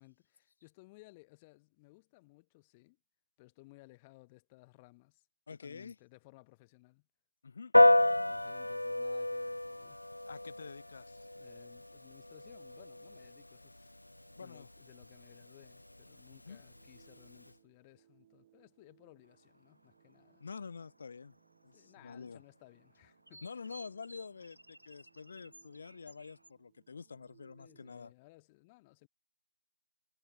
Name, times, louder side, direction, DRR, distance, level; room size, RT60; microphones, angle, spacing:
voice 1, 0.0-3.0 3.4-7.1 8.2-10.0 11.4-14.0 14.3-20.4 21.7-23.4 27.6-29.1, left 24 dB, 15° left, 1.9 m, -60 dB
voice 2, 5.5-6.0 7.4-7.7 10.3-11.3 14.4-14.7 16.3-16.6 20.4-21.4 21.6-22.4 23.4-28.1, left 5 dB, 35° left, 3.7 m, -47 dB
Piano, 7.7-17.5, left 1 dB, 75° left, 0.4 m, -32 dB
sound 1, 16.7-27.9, right 12 dB, 20° right, 4.7 m, -69 dB
sound 2, 19.2-26.5, right 1 dB, 85° right, 6.5 m, -60 dB
figure-of-eight pair, 160°, 0 cm